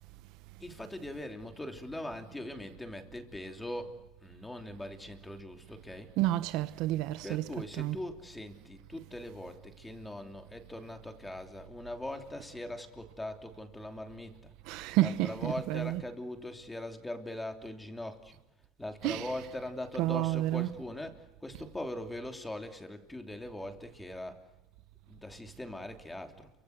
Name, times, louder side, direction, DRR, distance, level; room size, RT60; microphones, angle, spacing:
voice 1, 0.6-6.1 7.2-14.5 15.0-18.4 18.8-24.4 25.1-26.5, left 1 dB, 10° left, 3.0 m, -41 dB
voice 2, 6.2-7.4 7.8-8.0 14.7-16.0 19.0-19.2 20.0-20.7, right 16 dB, 65° right, 1.0 m, -30 dB
29.5 x 24.5 x 8.0 m
supercardioid pair, 125°, 0 cm